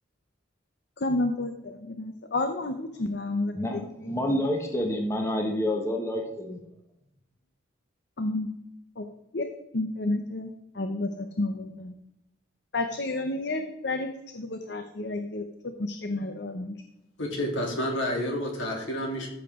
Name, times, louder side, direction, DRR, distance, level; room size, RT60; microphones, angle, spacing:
voice 1, 1.0-4.1 8.2-8.5 9.0-9.1 9.3-9.4 9.7-11.9 12.7-15.4 15.8-16.8, left 2 dB, 55° left, 6 dB, 0.8 m, -31 dB
voice 2, 3.5-6.6, left 1 dB, 15° left, 2 dB, 1.1 m, -28 dB
voice 3, 17.2-19.3, equal, 80° left, 0 dB, 3.0 m, -29 dB
14.0 x 7.1 x 3.7 m, 0.84 s
head